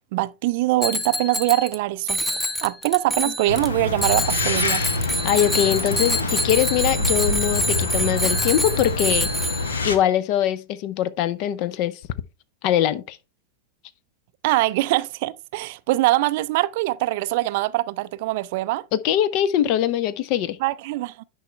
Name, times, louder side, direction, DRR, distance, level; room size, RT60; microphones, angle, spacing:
voice 1, 0.1-2.2 2.6-4.8 14.4-18.8 20.6-21.2, right 18 dB, 50° right, 0.4 m, -23 dB
Bicycle bell, 0.8-1.8 2.1-3.7 4.0-9.9, equal, 5° left, 0.9 m, -26 dB
sound 1, 3.5-10.0, left 2 dB, 70° left, 1.1 m, -26 dB
voice 2, 5.2-9.5 9.8-12.0 12.6-13.2 18.9-20.6, left 11 dB, 45° left, 0.7 m, -22 dB
10.0 x 5.5 x 3.3 m
figure-of-eight pair, 90°, 0 cm